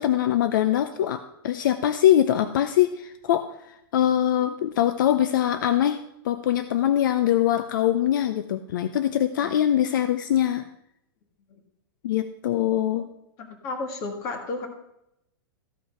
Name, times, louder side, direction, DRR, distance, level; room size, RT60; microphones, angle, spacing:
voice 1, 0.0-10.7 12.0-13.1, left 11 dB, 60° left, 11 dB, 0.6 m, -23 dB
voice 2, 13.4-14.7, left 3 dB, 25° left, 5 dB, 1.6 m, -33 dB
14.0 x 5.7 x 5.6 m, 0.82 s
supercardioid pair, 175°, 12 cm